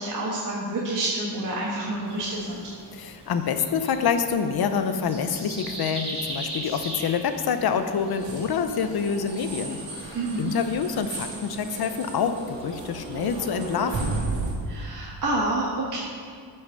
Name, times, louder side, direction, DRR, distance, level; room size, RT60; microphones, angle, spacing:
voice 1, 0.0-2.7 10.1-10.5 14.6-16.0, right 2 dB, 45° right, -5 dB, 1.6 m, -28 dB
sound 1, 2.0-14.2, right 1 dB, 15° right, 2.7 m, -41 dB
voice 2, 3.0-14.1, left 6 dB, 60° left, 8 dB, 0.8 m, -27 dB
sound 2, 8.2-14.5, right 3 dB, 90° right, 2.6 m, -34 dB
13.0 x 5.8 x 6.4 m, 2.2 s
wide cardioid pair, 140°, 42 cm